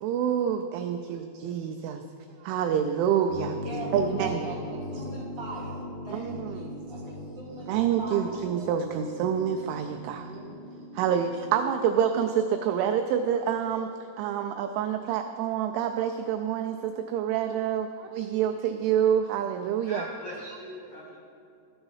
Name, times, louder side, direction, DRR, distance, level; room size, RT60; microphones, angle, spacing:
voice 1, 0.0-2.1 2.4-3.6 3.9-4.4 6.1-6.7 7.7-10.3 10.9-13.9 14.2-20.1, right 9 dB, 90° right, 6 dB, 2.7 m, -27 dB
sound 1, 3.3-11.5, left 2 dB, 55° left, 2.6 m, -39 dB
voice 2, 3.6-8.4 10.3-10.8, right 3 dB, 30° right, -8 dB, 2.3 m, -40 dB
voice 3, 19.9-21.2, left 1 dB, 75° left, -4 dB, 1.8 m, -40 dB
12.5 x 7.9 x 5.5 m, 2.6 s
omnidirectional pair, 5.9 m